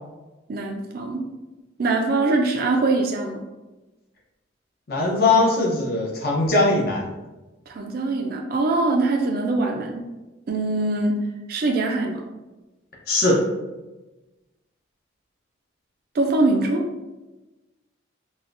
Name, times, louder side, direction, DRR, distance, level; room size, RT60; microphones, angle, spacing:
voice 1, 0.5-1.3 1.8-3.4 7.7-10.1 10.5-11.2 11.5-12.2 16.1-16.8, right 2 dB, 50° right, 2 dB, 0.3 m, -23 dB
voice 2, 4.9-7.0 13.1-13.4, left 2 dB, 50° left, -3 dB, 0.8 m, -20 dB
4.1 x 2.2 x 2.5 m, 1.1 s
head